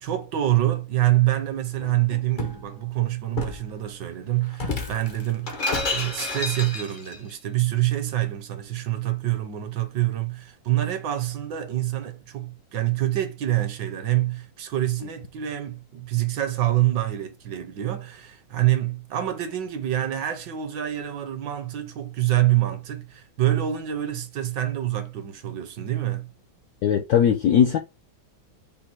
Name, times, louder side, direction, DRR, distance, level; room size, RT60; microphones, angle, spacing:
voice 1, 0.0-26.3, right 14 dB, 70° right, 1.2 m, -26 dB
Shatter, 1.8-2.6 3.4-3.7 4.5-7.2, left 3 dB, 50° left, 0.5 m, -30 dB
voice 2, 26.8-27.8, left 8 dB, 75° left, 0.8 m, -19 dB
5.4 x 2.2 x 4.2 m
omnidirectional pair, 2.2 m